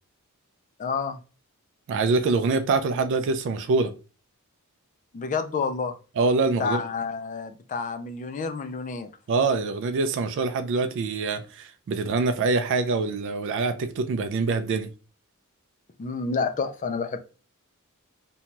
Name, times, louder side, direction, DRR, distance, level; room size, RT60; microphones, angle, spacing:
voice 1, 0.8-1.2 5.1-5.9 6.6-9.1 16.0-17.2, left 5 dB, 35° left, 0.3 m, -29 dB
voice 2, 1.9-3.9 6.2-6.8 9.3-14.9, right 3 dB, 60° right, 0.3 m, -25 dB
2.7 x 2.2 x 2.9 m
head